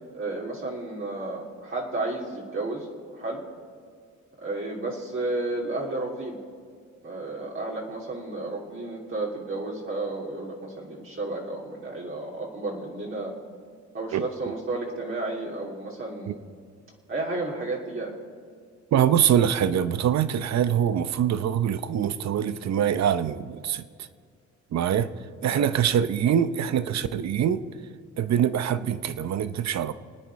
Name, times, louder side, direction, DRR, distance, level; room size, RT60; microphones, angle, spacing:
voice 1, 0.1-2.9 3.1-3.4 4.4-6.4 7.0-13.3 13.9-16.3 17.1-18.1 25.5-25.6, right 2 dB, 45° right, 2.9 m, -32 dB
voice 2, 18.9-23.9 24.7-25.1 25.4-27.6 28.2-29.9, right 9 dB, 60° right, 0.9 m, -24 dB
27.5 x 9.3 x 4.8 m
cardioid pair, 90°, 30 cm